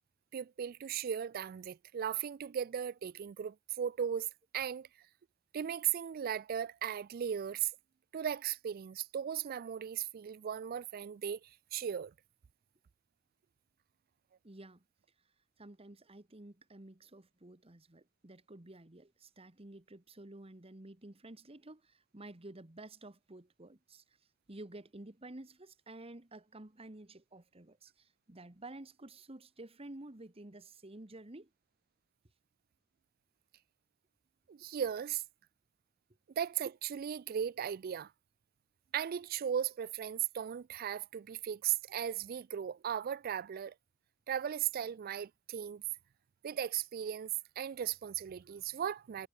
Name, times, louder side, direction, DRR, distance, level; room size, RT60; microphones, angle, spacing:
voice 1, 0.3-4.3 4.5-4.9 5.5-7.7 8.1-12.1 34.5-35.2 36.4-38.1 38.9-43.7 44.3-45.8 46.4-47.3 47.6-49.3, right 9 dB, 50° right, 0.3 m, -37 dB
voice 2, 14.4-14.8 15.6-24.0 24.5-31.5, right 2 dB, 30° right, 1.5 m, -51 dB
head